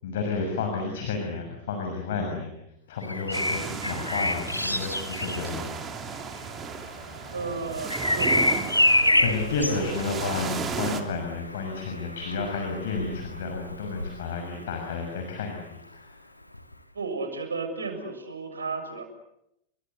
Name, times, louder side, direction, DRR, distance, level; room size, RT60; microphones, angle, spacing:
voice 1, 0.0-2.5 2.9-6.2 9.2-16.2, left 4 dB, 55° left, 3 dB, 6.2 m, -31 dB
Bird vocalization bird call bird song, 3.0-14.8 16.5-16.7, left 1 dB, 85° left, 1.8 m, -28 dB
sound 1, 3.3-11.0, right 6 dB, 25° right, 3.2 m, -35 dB
voice 2, 7.3-8.5 8.8-9.9 16.9-19.0, right 4 dB, 75° right, 6 dB, 6.9 m, -34 dB
29.5 x 24.0 x 8.1 m, 0.80 s
figure-of-eight pair, 90°, 0 cm